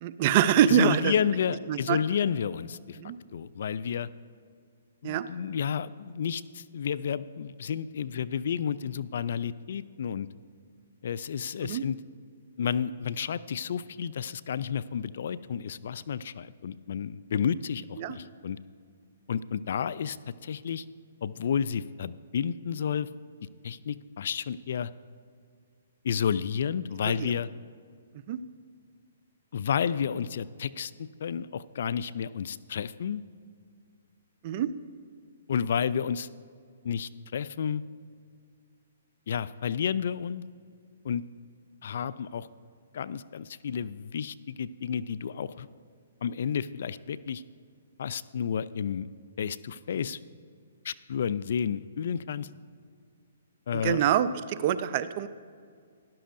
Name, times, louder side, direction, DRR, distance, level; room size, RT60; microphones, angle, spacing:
voice 1, 0.0-1.1 1.7-2.0 3.0-3.2 5.0-5.3 11.6-11.8 18.0-18.2 27.2-27.3 28.3-28.4 34.4-34.7 53.8-55.3, right 10 dB, 40° right, 14 dB, 0.4 m, -25 dB
voice 2, 0.7-3.0 3.3-4.1 5.0-10.3 11.0-12.0 12.6-18.6 19.3-20.2 20.4-20.8 21.2-23.1 23.6-24.9 26.0-27.5 29.5-30.9 31.2-33.2 35.5-36.3 36.8-37.8 39.3-40.4 41.0-41.2 41.8-42.5 42.9-45.7 46.2-47.4 48.0-49.1 49.4-50.2 50.8-52.5 53.7-54.0, left 7 dB, 60° left, 17 dB, 0.3 m, -31 dB
13.0 x 11.0 x 2.6 m, 2.1 s
hypercardioid pair, 135°, 0 cm